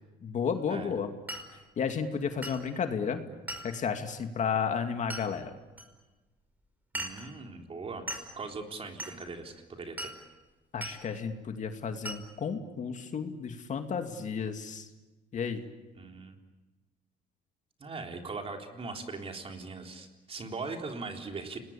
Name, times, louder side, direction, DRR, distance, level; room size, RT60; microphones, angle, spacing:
voice 1, 0.2-1.1 1.8-3.2 3.6-5.5 10.7-14.9 15.3-15.6, left 6 dB, 45° left, 6 dB, 2.4 m, -32 dB
Glass, 1.3-1.5 2.4-2.6 3.5-3.7 5.1-5.3 5.8-5.9 6.9-7.3 8.1-8.3 9.0-9.2 10.0-10.2 10.8-11.0 12.0-12.2, right 1 dB, 10° right, 5.3 m, -38 dB
voice 2, 6.9-8.1 8.3-10.1 16.0-16.3 17.8-21.6, right 4 dB, 35° right, 3 dB, 3.8 m, -40 dB
30.0 x 20.5 x 8.7 m, 1.2 s
cardioid pair, 110°, 17 cm